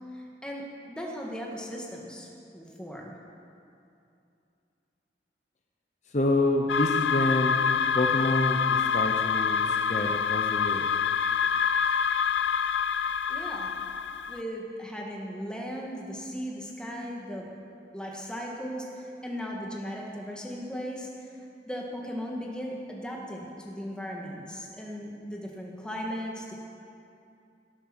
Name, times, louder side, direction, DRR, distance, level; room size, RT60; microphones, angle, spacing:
voice 1, 0.1-3.2 13.3-13.7 14.3-17.5 17.9-21.3 21.6-26.5, equal, 5° left, -2 dB, 1.6 m, -37 dB
voice 2, 6.1-7.6 7.9-10.9, left 1 dB, 40° left, 2 dB, 0.8 m, -27 dB
sound 1, 6.7-14.4, left 7 dB, 85° left, 0.4 m, -26 dB
17.5 x 8.3 x 6.1 m, 2.6 s
head